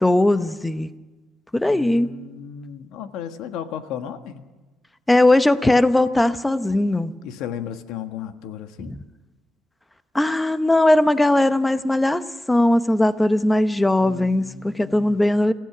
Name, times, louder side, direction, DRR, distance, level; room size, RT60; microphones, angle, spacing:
voice 1, 0.0-0.9 1.5-2.1 5.1-7.1 10.1-12.2 12.5-15.5, left 1 dB, 5° left, 12 dB, 0.8 m, -19 dB
voice 2, 1.7-4.4 7.2-8.9 14.0-15.2, left 9 dB, 70° left, 8 dB, 1.5 m, -35 dB
27.0 x 16.0 x 6.1 m, 1.2 s
cardioid pair, 150°, 0 cm